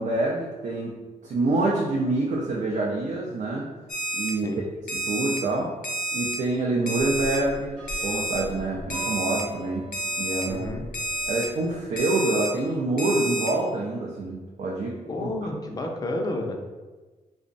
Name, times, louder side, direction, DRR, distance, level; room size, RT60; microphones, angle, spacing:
voice 1, 0.0-3.7 4.1-4.5 4.9-5.8 6.1-10.7 11.3-15.3, right 2 dB, 65° right, -3 dB, 0.5 m, -27 dB
Alarm, 3.9-4.3 4.9-5.4 5.8-6.3 6.9-7.4 7.9-8.4 8.9-9.4 9.9-10.4 10.9-11.4 12.0-12.5 13.0-13.5, right 1 dB, 70° left, 0.6 m, -29 dB
sound 1, 7.0-12.0, right 2 dB, 80° right, 1.0 m, -41 dB
voice 2, 10.5-10.8 15.1-16.6, left 2 dB, 30° left, 2 dB, 0.4 m, -30 dB
3.4 x 2.1 x 3.8 m, 1.3 s
wide cardioid pair, 155°, 14 cm